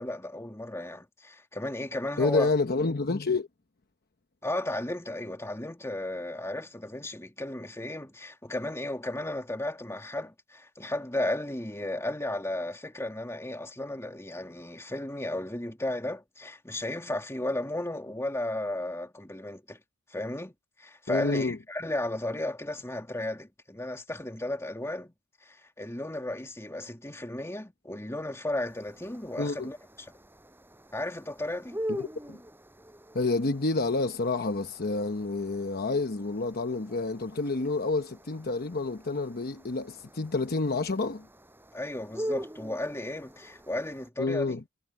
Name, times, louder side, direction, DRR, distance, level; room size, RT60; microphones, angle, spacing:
voice 1, 0.0-2.5 4.4-19.8 20.1-25.1 25.4-30.1 30.9-31.8 41.7-44.6, left 1 dB, 15° left, 2.4 m, -34 dB
voice 2, 2.2-3.5 21.1-21.6 29.4-29.7 31.9-32.4 33.1-41.3 44.2-44.6, left 3 dB, 45° left, 1.0 m, -29 dB
sound 1, 28.7-44.1, equal, 10° right, 7.5 m, -43 dB
head